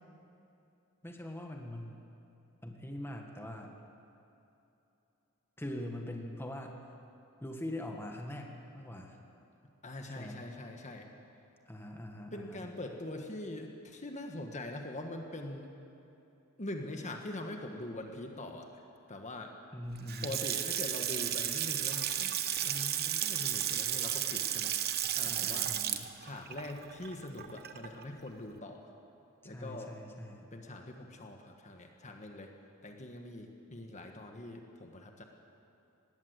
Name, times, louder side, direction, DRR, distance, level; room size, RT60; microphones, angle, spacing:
voice 1, 1.0-2.0 2.6-3.7 5.6-6.8 7.4-9.2 10.1-10.4 11.7-12.7 19.7-20.4 25.2-26.1 29.4-30.5, left 1 dB, 10° left, 2 dB, 1.6 m, -42 dB
voice 2, 9.8-11.1 12.3-15.7 16.6-18.8 19.1-19.5 20.2-24.7 25.1-25.7 26.2-28.9 29.4-29.9 30.5-32.5 32.8-35.2, left 1 dB, 35° left, 3 dB, 1.6 m, -43 dB
Water tap faucet / Sink (filling or washing) / Splash splatter, 20.0-28.0, right 10 dB, 45° right, 1.0 m, -34 dB
20.0 x 17.5 x 8.2 m, 2.8 s
head